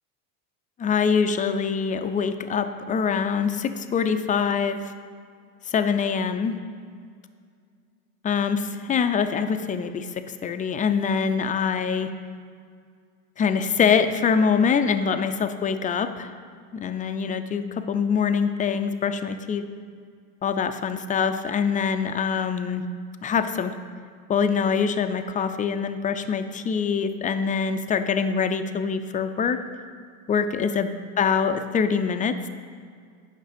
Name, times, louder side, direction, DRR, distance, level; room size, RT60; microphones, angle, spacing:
voice 1, 0.8-4.9 5.7-6.6 8.2-12.1 13.4-16.3 16.7-19.7 20.4-22.8 23.2-23.7 24.3-29.6 30.3-30.9 31.2-32.5, left 6 dB, 20° left, 9 dB, 0.4 m, -24 dB
9.2 x 5.9 x 5.0 m, 2.1 s
supercardioid pair, 100°, 43 cm